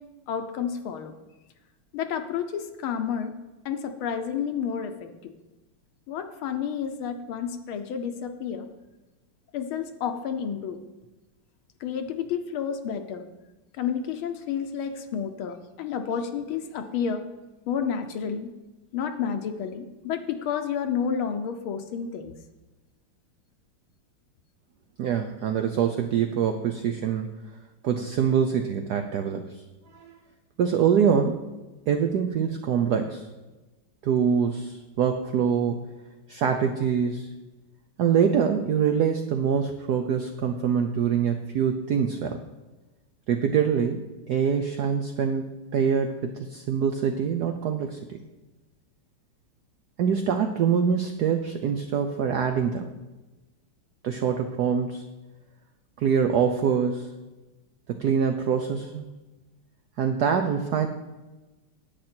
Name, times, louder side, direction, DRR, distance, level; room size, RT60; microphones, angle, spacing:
voice 1, 0.3-1.1 1.9-3.3 3.6-5.3 6.1-8.7 9.5-10.8 11.8-13.2 13.7-17.2 17.7-18.5 18.9-22.4, left 7 dB, 75° left, 7 dB, 1.5 m, -30 dB
voice 2, 25.0-27.3 27.8-29.4 29.9-30.2 30.6-31.4 31.9-33.2 34.0-35.8 36.3-37.3 38.0-42.4 43.3-45.5 45.7-48.2 50.0-52.9 54.0-55.0 56.0-57.1 57.9-59.1 60.0-60.9, right 7 dB, 75° right, 6 dB, 0.9 m, -24 dB
10.5 x 8.5 x 4.4 m, 1.1 s
omnidirectional pair, 2.4 m